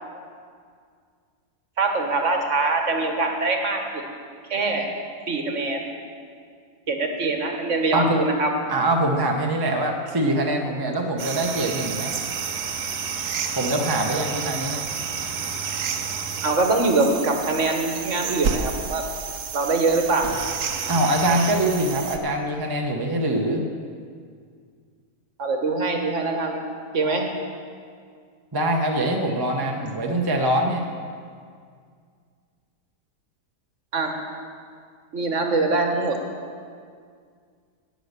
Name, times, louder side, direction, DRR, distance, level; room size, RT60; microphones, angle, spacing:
voice 1, 1.8-3.8 4.5-4.8 5.3-5.9 6.9-8.5 16.4-19.0 19.5-20.3 25.4-26.6 26.9-27.3 33.9-34.1 35.1-36.2, right 3 dB, 50° right, 3 dB, 1.5 m, -23 dB
voice 2, 7.9-8.2 8.7-12.2 13.5-14.8 20.9-23.6 28.5-30.9, right 1 dB, 20° right, 1 dB, 0.8 m, -23 dB
sound 1, 11.2-22.2, right 6 dB, 75° right, 1.4 m, -30 dB
17.5 x 6.3 x 6.7 m, 2.1 s
omnidirectional pair, 1.7 m